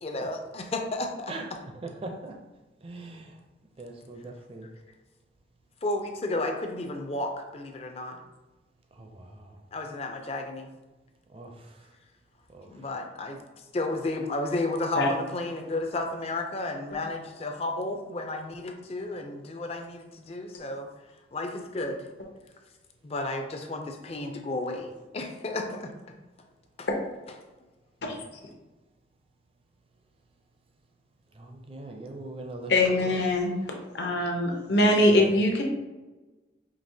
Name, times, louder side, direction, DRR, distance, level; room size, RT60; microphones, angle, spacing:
voice 1, 0.0-1.6 5.8-8.2 9.7-10.7 12.7-13.4 13.7-20.9 21.3-22.1 23.0-25.9 26.8-26.9, left 2 dB, 35° left, 4 dB, 0.4 m, -32 dB
voice 2, 2.0-2.3 2.8-3.2 3.8-4.7 11.3-11.5 31.4-32.7, right 2 dB, 30° right, 3 dB, 0.5 m, -40 dB
voice 3, 32.7-33.5 33.9-35.6, left 1 dB, 65° left, 1 dB, 0.8 m, -22 dB
5.2 x 2.8 x 2.7 m, 1.2 s
head